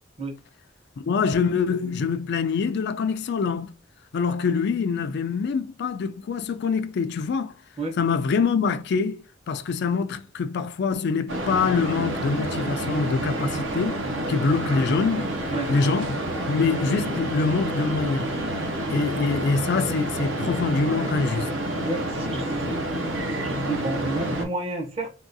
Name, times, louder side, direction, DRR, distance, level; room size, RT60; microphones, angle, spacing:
voice 1, 1.0-3.7 4.1-7.5 8.0-15.3 15.7-16.2 16.5-18.3 18.9-21.5, left 5 dB, 60° left, 0.3 m, -25 dB
sound 1, 11.3-24.5, right 1 dB, 65° right, 0.7 m, -29 dB
voice 2, 21.9-22.8 23.4-25.1, right 2 dB, 30° right, 0.7 m, -30 dB
3.6 x 2.3 x 2.6 m
head